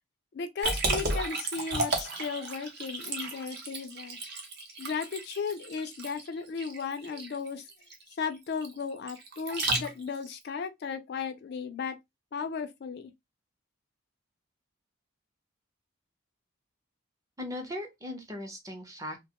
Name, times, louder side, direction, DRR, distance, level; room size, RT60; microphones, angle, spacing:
voice 1, 0.3-4.2 4.8-7.6 8.2-12.0 12.3-13.1, left 5 dB, 50° left, 0.3 m, -35 dB
Liquid, 0.6-10.3, right 2 dB, 50° right, 0.7 m, -33 dB
voice 2, 17.4-19.3, left 1 dB, 15° right, 0.6 m, -38 dB
2.7 x 2.2 x 2.8 m
head